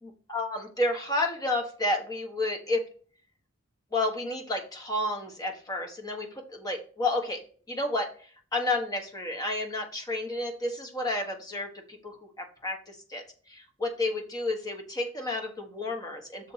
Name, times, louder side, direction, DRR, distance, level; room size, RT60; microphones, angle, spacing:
voice 1, 0.0-2.8 3.9-7.4 7.7-8.1 8.5-12.2 12.6-13.2 13.5-16.5, left 2 dB, 15° left, 2 dB, 1.5 m, -31 dB
6.3 x 4.2 x 5.8 m, 0.42 s
head